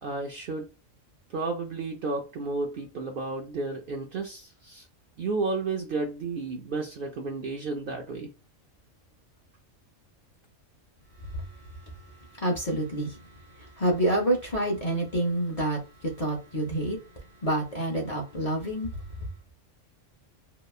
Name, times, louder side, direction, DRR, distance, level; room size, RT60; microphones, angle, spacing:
voice 1, 0.0-0.7 1.3-4.8 5.2-8.3, right 3 dB, 60° right, 0.6 m, -32 dB
voice 2, 12.4-13.2 13.6-17.0 17.4-18.9, right 1 dB, 40° left, 0.5 m, -28 dB
2.9 x 2.1 x 2.3 m
omnidirectional pair, 1.3 m